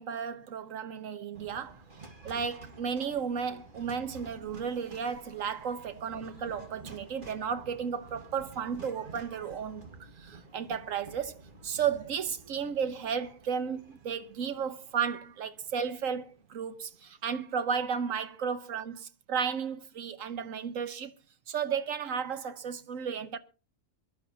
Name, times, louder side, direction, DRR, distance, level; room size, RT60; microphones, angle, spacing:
voice 1, 0.0-1.8 2.2-21.1 21.5-23.4, right 7 dB, 85° right, 1.4 m, -34 dB
sound 1, 1.3-17.6, right 3 dB, 40° right, 2.1 m, -51 dB
23.5 x 12.0 x 2.8 m
omnidirectional pair, 1.3 m